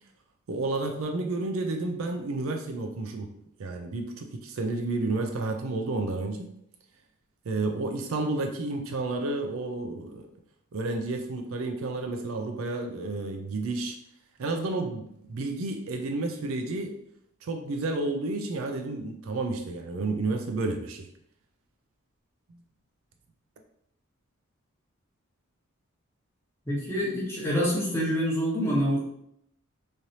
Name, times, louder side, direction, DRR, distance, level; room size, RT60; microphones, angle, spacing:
voice 1, 0.5-3.3 3.6-6.5 7.5-10.3 10.7-14.0 14.4-17.0 17.4-21.1, right 2 dB, 75° right, 4 dB, 0.4 m, -31 dB
voice 2, 26.7-29.0, equal, 10° left, -5 dB, 0.9 m, -26 dB
3.1 x 2.6 x 2.7 m, 0.71 s
head